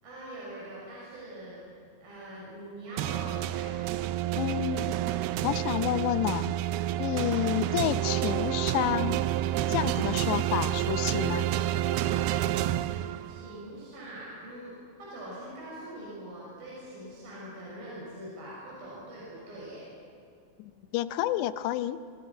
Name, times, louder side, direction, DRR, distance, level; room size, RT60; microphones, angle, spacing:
voice 1, 0.0-1.6 2.0-3.7 13.3-19.9, right 1 dB, 55° right, -6 dB, 8.5 m, -43 dB
sound 1, 3.0-13.6, right 13 dB, 80° right, 2.4 m, -29 dB
voice 2, 4.4-5.2 5.4-6.5 7.0-9.2 9.7-11.5 20.6-22.0, left 13 dB, 85° left, 12 dB, 3.0 m, -30 dB
27.5 x 27.0 x 6.0 m, 2.2 s
omnidirectional pair, 4.9 m